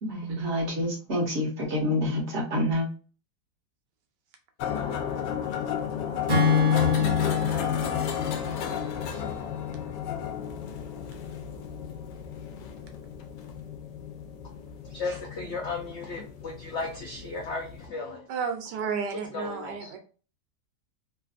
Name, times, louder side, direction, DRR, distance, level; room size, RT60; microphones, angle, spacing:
voice 1, 0.0-2.9, left 1 dB, 45° right, 1.2 m, -27 dB
sound 1, 4.6-17.9, left 8 dB, 90° left, 1.2 m, -34 dB
Acoustic guitar / Strum, 6.3-9.7, left 6 dB, 25° right, 0.8 m, -26 dB
voice 2, 14.8-18.2 19.3-19.9, left 3 dB, 70° left, 0.6 m, -35 dB
voice 3, 18.3-20.0, right 6 dB, 85° right, 1.3 m, -32 dB
3.3 x 2.5 x 2.4 m
omnidirectional pair, 1.8 m